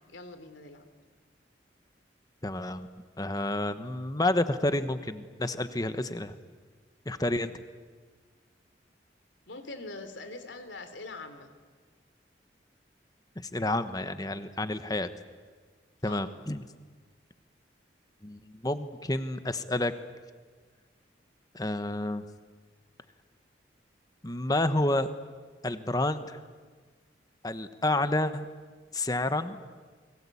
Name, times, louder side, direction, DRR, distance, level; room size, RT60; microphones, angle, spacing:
voice 1, 0.1-0.8 9.5-11.5 16.0-16.3, left 2 dB, 85° left, 9 dB, 3.2 m, -43 dB
voice 2, 2.4-2.9 3.2-6.3 7.0-7.5 13.4-15.1 16.0-16.6 18.2-19.9 21.5-22.2 24.2-25.1 25.6-26.4 27.4-28.5 28.9-29.6, left 1 dB, 20° left, 11 dB, 1.2 m, -29 dB
29.0 x 22.5 x 8.5 m, 1.5 s
head